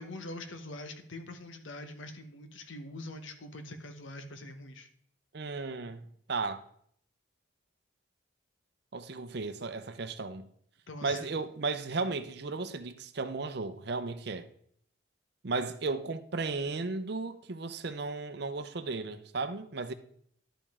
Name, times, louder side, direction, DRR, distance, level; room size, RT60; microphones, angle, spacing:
voice 1, 0.0-4.9 10.9-11.4, left 2 dB, 75° left, 1.0 m, -44 dB
voice 2, 5.3-6.6 8.9-10.5 11.0-14.5 15.4-19.9, right 3 dB, 55° right, 0.6 m, -35 dB
11.0 x 5.3 x 3.5 m
head